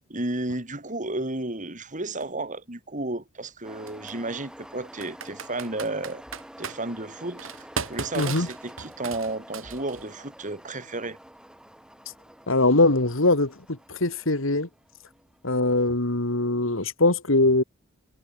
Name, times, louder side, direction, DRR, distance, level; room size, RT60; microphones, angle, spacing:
voice 1, 0.1-6.2 6.6-7.5 7.9-11.2, right 2 dB, 40° right, 4.1 m, -32 dB
Computer keyboard, 2.2-2.3 3.9-4.1 5.0-6.8 7.4-10.1, right 5 dB, 85° right, 5.0 m, -36 dB
sound 1, 3.6-16.4, equal, 5° right, 7.6 m, -48 dB
voice 2, 8.1-8.5 12.5-14.7 15.4-17.6, left 2 dB, 75° left, 2.7 m, -22 dB
head